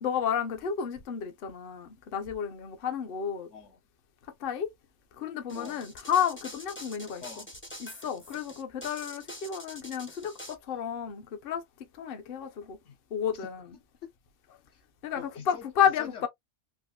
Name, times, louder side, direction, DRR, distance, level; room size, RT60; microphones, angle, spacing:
voice 1, 0.0-3.5 4.4-4.7 5.2-7.2 7.8-11.6 11.9-12.8 13.1-13.6 15.0-16.3, left 8 dB, 55° left, 0.8 m, -31 dB
voice 2, 3.5-3.8 5.5-5.8 7.2-7.5 12.8-13.0 13.3-13.5 13.7-14.1 14.7-14.8 15.1-15.6 16.0-16.3, left 7 dB, 70° left, 1.2 m, -45 dB
sound 1, 5.5-10.5, left 1 dB, 15° left, 0.4 m, -45 dB
3.5 x 2.5 x 2.2 m
omnidirectional pair, 1.2 m